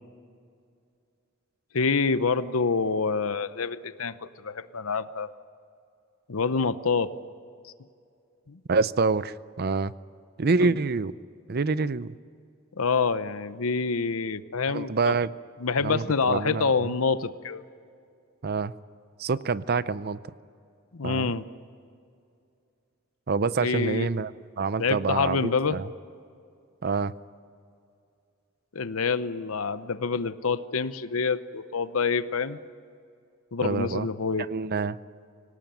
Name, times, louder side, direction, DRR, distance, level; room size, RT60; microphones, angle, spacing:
voice 1, 1.7-4.2 4.4-5.3 6.3-7.1 8.5-8.6 10.6-10.7 12.8-15.1 15.6-17.6 20.9-21.4 23.6-24.1 24.8-25.8 28.7-32.6 33.5-34.5, left 4 dB, 70° left, 13 dB, 0.8 m, -27 dB
voice 2, 8.7-9.9 10.4-11.1 11.5-12.2 14.7-15.3 15.8-16.9 18.4-18.7 19.2-20.2 21.0-21.3 23.3-24.3 24.6-25.9 26.8-27.1 33.6-34.1 34.5-35.0, right 4 dB, 45° right, 16 dB, 0.6 m, -26 dB
25.0 x 18.0 x 9.1 m, 2.4 s
head